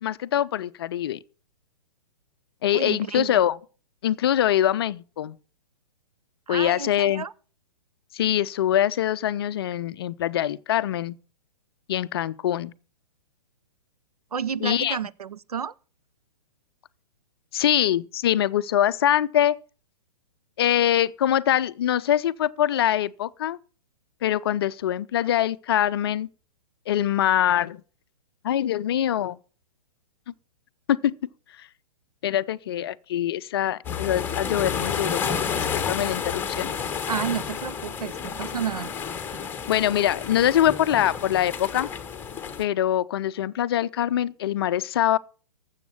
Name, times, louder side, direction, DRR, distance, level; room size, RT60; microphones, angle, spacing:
voice 1, 0.0-1.2 2.6-3.6 4.0-5.4 6.5-7.2 8.1-11.2 11.9-12.7 14.6-15.0 17.5-19.6 20.6-23.6 24.2-26.3 26.9-27.8 28.4-29.4 30.3-30.4 30.9-31.1 31.6-31.7 32.2-35.2 35.5-36.7 39.7-41.9 42.6-45.2, left 11 dB, 40° left, 0.5 m, -23 dB
voice 2, 2.7-3.4 6.5-7.3 14.3-15.7 37.1-38.9, right 7 dB, 70° right, 0.5 m, -31 dB
sound 1, 33.8-42.6, left 7 dB, 10° left, 1.0 m, -30 dB
13.0 x 7.6 x 5.9 m
figure-of-eight pair, 120°, 20 cm